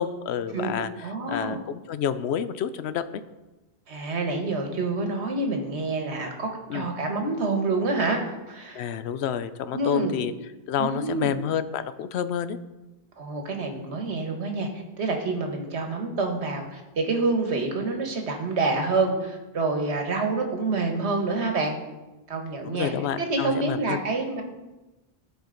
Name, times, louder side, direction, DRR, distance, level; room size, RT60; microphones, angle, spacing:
voice 1, 0.0-0.9 1.3-3.2 6.7-6.9 8.7-10.3 10.7-12.6 22.6-24.0, left 8 dB, 75° left, 13 dB, 0.8 m, -29 dB
voice 2, 1.0-1.6 3.9-8.8 9.7-10.2 10.8-11.3 13.2-21.8 22.3-24.4, right 3 dB, 85° right, 3 dB, 1.5 m, -27 dB
14.5 x 5.0 x 3.8 m, 1.1 s
omnidirectional pair, 1.1 m